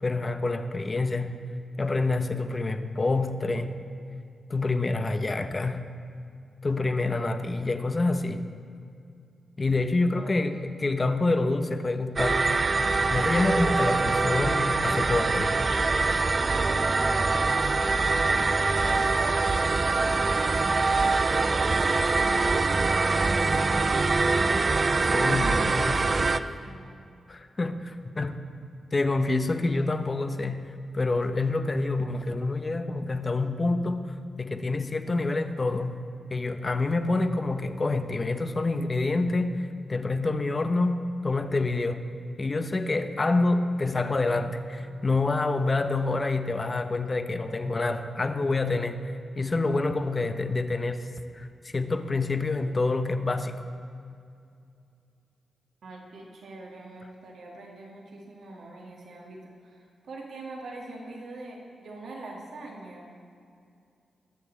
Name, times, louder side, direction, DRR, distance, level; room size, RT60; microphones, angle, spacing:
voice 1, 0.0-1.4 1.8-3.8 4.5-5.9 6.6-8.4 9.6-12.6 13.1-15.6 25.1-26.1 27.3-28.4 28.9-36.0 36.3-39.6 39.9-42.1 42.4-51.1 51.3-53.6, left 3 dB, 35° left, 8 dB, 0.9 m, -27 dB
voice 2, 10.1-10.8 16.4-17.7 18.0-20.6 21.6-23.7 25.2-27.0 55.8-63.1, right 2 dB, 80° right, -2 dB, 2.2 m, -43 dB
sound 1, 12.2-26.4, right 3 dB, 45° right, 0.4 m, -24 dB
20.5 x 6.9 x 4.1 m, 2.5 s
cardioid pair, 55°, 0 cm